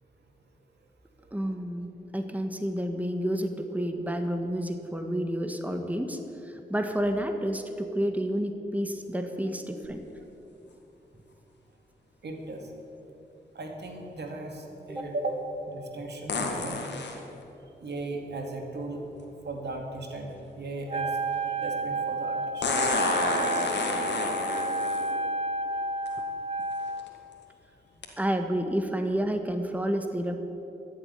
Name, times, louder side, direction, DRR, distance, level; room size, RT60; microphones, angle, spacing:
voice 1, 1.3-10.0 14.9-15.1 28.2-30.4, equal, 10° right, 5 dB, 1.5 m, -30 dB
sound 1, 9.8-9.9 16.3-17.2 19.2-19.3 22.6-25.1 26.1-26.2 26.8-27.1 28.0-28.1, left 3 dB, 85° left, 1.9 m, -29 dB
voice 2, 12.2-12.6 13.5-16.8 17.8-19.0 19.4-21.2 21.4-22.7, right 2 dB, 75° right, 2 dB, 2.2 m, -36 dB
Wind instrument woodwind instrument, 20.9-27.1, right 2 dB, 35° right, 0.8 m, -30 dB
14.5 x 7.5 x 9.6 m, 2.9 s
cardioid pair, 45°, 18 cm